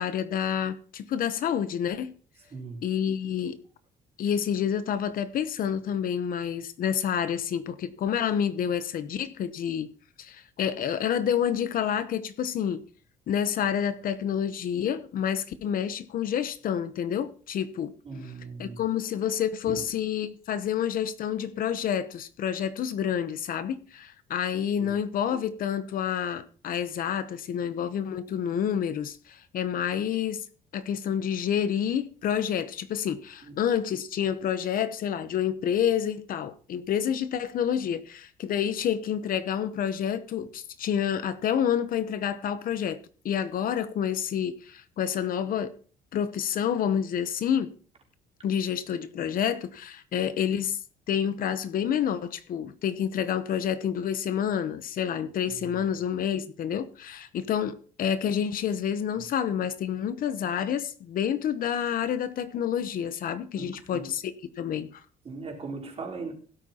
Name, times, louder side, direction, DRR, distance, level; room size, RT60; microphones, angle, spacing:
voice 1, 0.0-2.1 2.8-3.6 4.2-9.9 10.2-12.8 13.3-17.9 18.6-30.4 30.7-43.0 43.2-45.7 46.1-47.7 48.4-50.8 51.1-65.0, left 9 dB, 55° left, 0.9 m, -28 dB
voice 2, 2.5-2.9 18.0-18.8 19.6-19.8 24.8-25.0 33.4-33.6 55.5-55.9 63.5-64.1 65.2-66.3, right 4 dB, 35° right, 4.0 m, -39 dB
16.5 x 12.5 x 2.9 m
cardioid pair, 110°, 17 cm